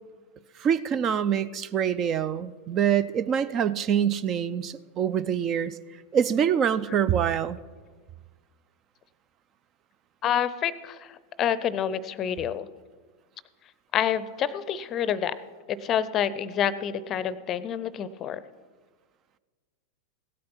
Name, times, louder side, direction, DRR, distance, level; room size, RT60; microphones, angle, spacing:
voice 1, 0.6-5.7 6.1-7.6, right 8 dB, 30° right, 16 dB, 0.4 m, -25 dB
voice 2, 10.2-12.7 13.9-15.4 15.7-18.4, left 9 dB, 30° left, 17 dB, 0.6 m, -28 dB
16.5 x 8.5 x 5.8 m, 1.4 s
figure-of-eight pair, 90°, 0 cm